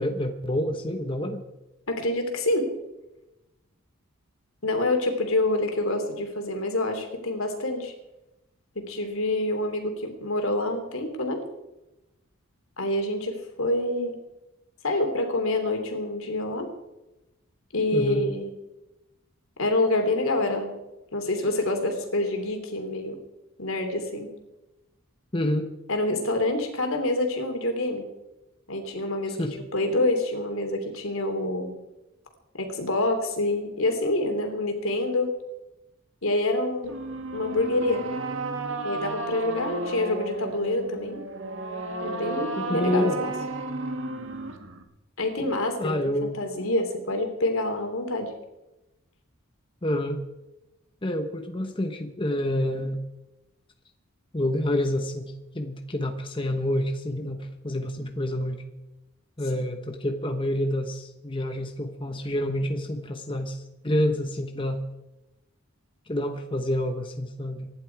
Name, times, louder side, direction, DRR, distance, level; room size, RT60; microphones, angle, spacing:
voice 1, 0.0-1.4 17.9-18.2 25.3-25.7 29.3-29.5 42.6-43.2 45.8-46.4 49.8-50.2 51.0-53.0 54.3-58.6 59.4-64.8 66.1-67.7, left 1 dB, 25° left, 5 dB, 1.0 m, -28 dB
voice 2, 1.9-2.7 4.6-7.9 8.7-11.4 12.8-14.1 14.8-16.7 17.7-18.5 19.6-20.7 21.1-23.2 23.6-24.3 25.9-28.0 28.7-31.7 32.5-35.3 36.2-36.9 37.3-38.1 38.8-41.2 42.0-43.3 45.2-48.3, left 2 dB, 75° left, 5 dB, 3.2 m, -27 dB
sound 1, 36.8-44.8, right 2 dB, 65° right, 1.8 m, -33 dB
24.5 x 11.5 x 4.7 m, 0.99 s
head